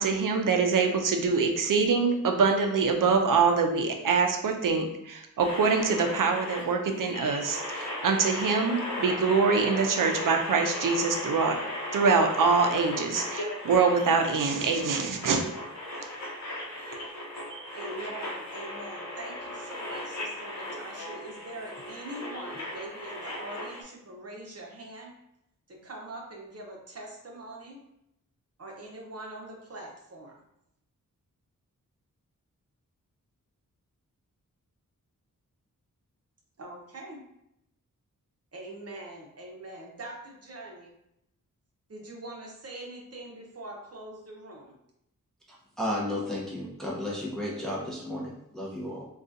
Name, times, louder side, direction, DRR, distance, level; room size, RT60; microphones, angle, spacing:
voice 1, 0.0-11.6 11.9-15.4 17.5-17.7, right 5 dB, 70° right, 4 dB, 0.5 m, -24 dB
sound 1, 5.4-23.8, left 1 dB, 55° left, 0.8 m, -37 dB
voice 2, 17.7-25.1 25.7-27.8 28.6-30.3 36.6-37.2 38.5-40.9 41.9-44.7, right 1 dB, 45° right, -1 dB, 0.8 m, -43 dB
voice 3, 45.5-49.1, left 1 dB, ahead, -5 dB, 0.8 m, -33 dB
3.8 x 2.3 x 2.6 m, 0.80 s
wide cardioid pair, 90°, 33 cm